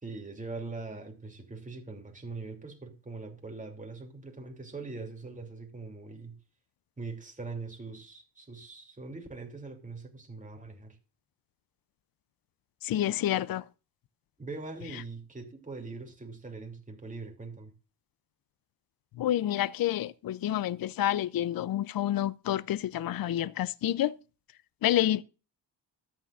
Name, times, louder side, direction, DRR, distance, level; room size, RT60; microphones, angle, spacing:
voice 1, 0.0-6.4 7.0-11.0 14.4-17.7, right 3 dB, 20° right, 2.9 m, -42 dB
voice 2, 12.8-13.6 19.2-24.2 24.8-25.2, left 12 dB, 60° left, 0.6 m, -28 dB
13.0 x 9.1 x 2.5 m
cardioid pair, 90°, 41 cm